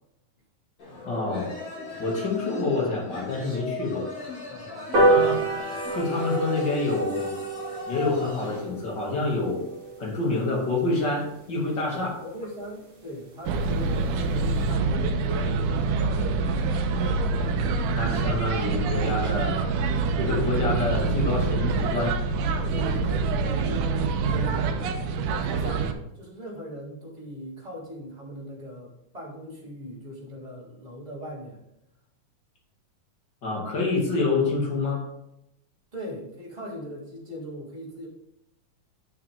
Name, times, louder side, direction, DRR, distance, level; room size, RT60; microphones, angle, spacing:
sound 1, 0.8-8.7, left 2 dB, 55° left, 4.8 m, -38 dB
voice 1, 1.0-1.5 2.0-4.1 5.1-5.5 5.9-7.3 7.9-9.7 10.0-12.1 17.9-19.6 20.2-22.2 33.4-35.1, left 3 dB, 35° left, -2 dB, 2.7 m, -27 dB
voice 2, 4.5-5.3 11.9-15.6 22.7-31.6 35.9-38.1, equal, 10° right, -7 dB, 3.2 m, -40 dB
sound 2, 4.9-11.7 12.1-12.2 12.5-12.6 12.9-13.0 13.3-13.4 13.7-14.0 14.4-14.5, right 2 dB, 40° right, 2.9 m, -28 dB
sound 3, 13.5-25.9, right 4 dB, 80° right, 2.3 m, -25 dB
10.5 x 6.5 x 3.7 m, 0.80 s
omnidirectional pair, 3.7 m